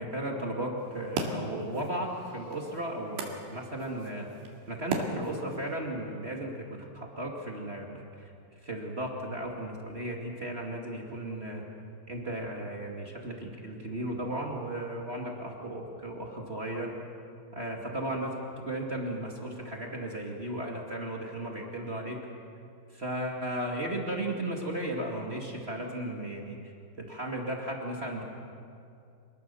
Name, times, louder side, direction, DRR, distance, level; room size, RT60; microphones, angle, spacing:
voice 1, 0.0-4.3 4.7-8.3 8.6-11.6 12.1-16.9 17.5-22.2 22.9-26.6 27.0-28.2, right 1 dB, 35° right, -1 dB, 0.9 m, -35 dB
sound 1, 0.8-5.8, right 3 dB, 80° right, 4.5 m, -38 dB
27.5 x 20.5 x 7.0 m, 2.5 s
omnidirectional pair, 5.1 m